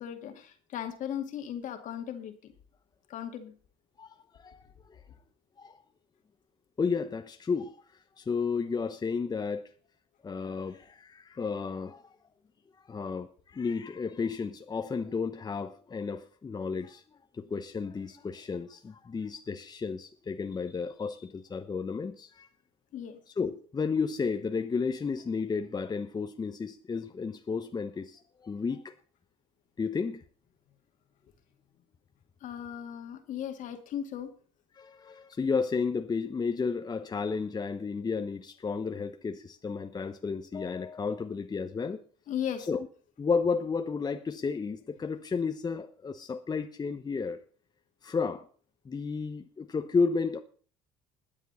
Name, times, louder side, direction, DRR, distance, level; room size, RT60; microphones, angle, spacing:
voice 1, 0.0-2.5 3.1-3.5 22.9-23.2 32.4-34.3 42.3-42.7, left 9 dB, 60° left, 2.2 m, -37 dB
voice 2, 4.0-4.6 4.9-5.0 5.6-5.8 6.8-7.8 8.2-9.7 10.2-12.0 12.9-17.0 17.3-22.5 23.4-28.9 29.8-30.2 34.7-42.0 42.7-42.8 43.2-47.4 48.0-48.5 48.8-50.4, left 5 dB, 30° left, 1.0 m, -32 dB
21.0 x 7.3 x 4.2 m
hypercardioid pair, 70°, 15 cm